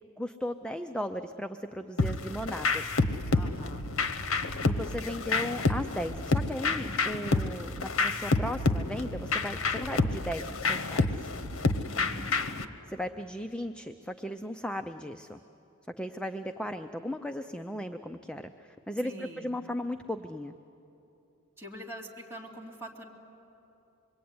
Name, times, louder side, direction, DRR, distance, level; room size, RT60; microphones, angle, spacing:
voice 1, 0.2-2.9 4.6-11.3 12.9-15.4 16.0-20.5, equal, 5° left, 7 dB, 0.5 m, -36 dB
sound 1, 2.0-12.7, left 3 dB, 75° left, 1.1 m, -29 dB
voice 2, 3.3-3.9 11.9-12.2 19.0-19.5 21.6-23.1, right 1 dB, 15° right, -3 dB, 2.8 m, -44 dB
26.0 x 22.5 x 9.5 m, 2.9 s
head